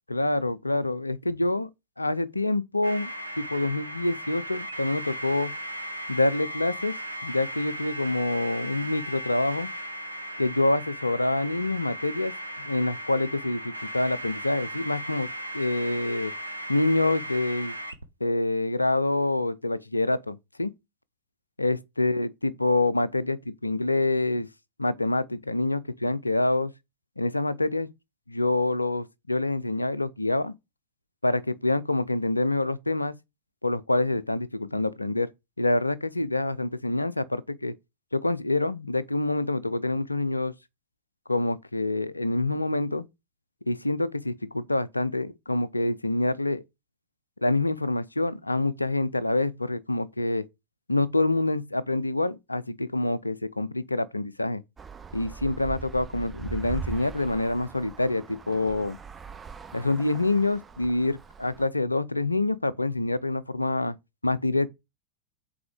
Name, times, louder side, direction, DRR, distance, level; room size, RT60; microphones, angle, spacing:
voice 1, 0.1-1.7 2.0-3.1 3.4-5.5 6.1-6.9 7.2-9.7 10.4-12.3 12.6-15.3 15.5-16.3 16.7-17.7 18.2-20.7 21.6-24.5 24.8-26.7 27.2-27.9 28.3-30.5 31.2-33.2 33.6-35.3 35.6-37.8 38.1-40.5 41.3-43.1 43.7-46.6 47.4-50.5 50.9-54.6 55.1-59.0 59.7-64.0 64.2-64.7, left 2 dB, 85° left, 0.5 m, -26 dB
sound 1, 2.8-18.0, equal, 85° right, 0.8 m, -37 dB
Traffic noise roadway noise, 54.8-61.7, right 6 dB, 15° right, 0.6 m, -41 dB
5.9 x 4.2 x 5.0 m
figure-of-eight pair, 90°, 0 cm